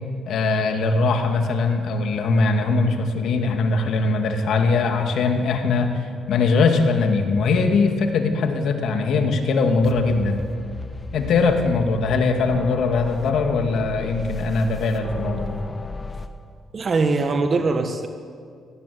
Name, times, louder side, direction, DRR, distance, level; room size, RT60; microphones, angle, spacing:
voice 1, 0.3-10.4 11.1-15.5, left 3 dB, 70° left, 5 dB, 2.4 m, -21 dB
sound 1, 9.8-16.3, left 3 dB, 25° left, 1.6 m, -35 dB
voice 2, 16.7-18.1, right 3 dB, 40° right, 6 dB, 1.3 m, -21 dB
18.0 x 16.0 x 9.5 m, 2.3 s
cardioid pair, 90°, 0 cm